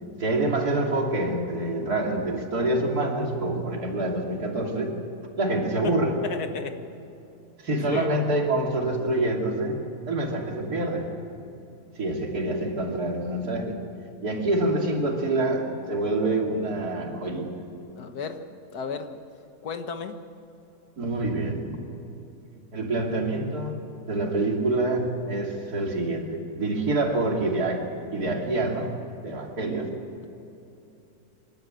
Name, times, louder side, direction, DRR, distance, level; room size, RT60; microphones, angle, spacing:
voice 1, 0.2-5.0 5.4-6.2 7.6-9.8 10.1-11.1 11.9-13.8 14.2-17.5 21.0-21.8 22.7-23.7 24.0-27.8 28.1-28.9 29.2-29.9, right 2 dB, 80° right, 0 dB, 3.3 m, -26 dB
voice 2, 6.2-6.8 7.9-8.3 18.0-18.4 18.7-19.2 19.6-20.2, left 5 dB, 85° left, 7 dB, 1.9 m, -34 dB
27.0 x 13.0 x 7.7 m, 2.9 s
omnidirectional pair, 1.6 m